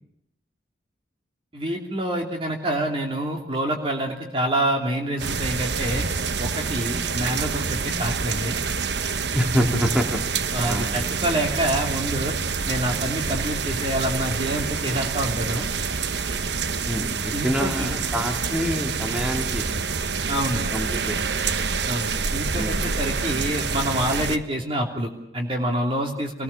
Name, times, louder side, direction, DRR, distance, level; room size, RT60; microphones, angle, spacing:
voice 1, 1.5-6.0 6.4-8.6 10.5-12.3 12.7-15.7 17.3-18.0 20.3-20.6 21.9-26.4, right 1 dB, 30° right, 1 dB, 3.1 m, -27 dB
sound 1, 5.2-24.4, right 5 dB, 70° right, 1.1 m, -27 dB
voice 2, 9.3-10.9 16.9-19.6 20.7-21.4 22.5-22.8, equal, 5° right, 2 dB, 3.6 m, -26 dB
28.5 x 20.0 x 7.1 m, 0.78 s
head